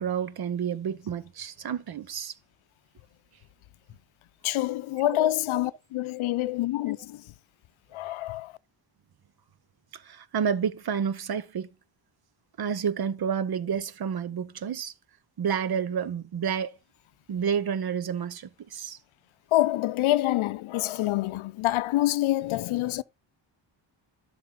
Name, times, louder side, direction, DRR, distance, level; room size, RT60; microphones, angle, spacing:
voice 1, 0.0-2.3 5.0-5.3 9.9-11.7 12.6-14.9 15.4-16.7 17.3-19.0, right 7 dB, 50° right, 0.8 m, -30 dB
voice 2, 4.4-7.3 7.9-8.5 19.5-23.0, left 15 dB, 90° left, 0.6 m, -26 dB
12.0 x 6.1 x 3.8 m
cardioid pair, 115°, 47 cm